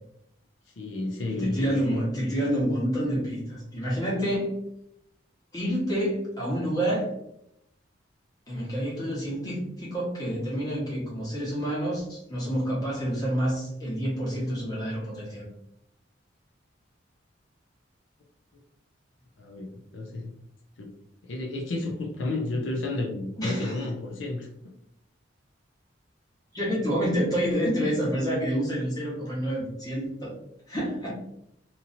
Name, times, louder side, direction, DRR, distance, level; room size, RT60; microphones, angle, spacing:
voice 1, 0.7-1.8 19.4-20.3 20.8-20.9 21.2-24.5, left 2 dB, 75° left, 1 dB, 0.5 m, -31 dB
voice 2, 1.3-4.6 5.5-7.1 8.5-15.4 23.4-23.8 26.5-30.3 30.7-31.1, equal, 20° left, -6 dB, 1.2 m, -28 dB
2.9 x 2.7 x 2.6 m, 0.78 s
head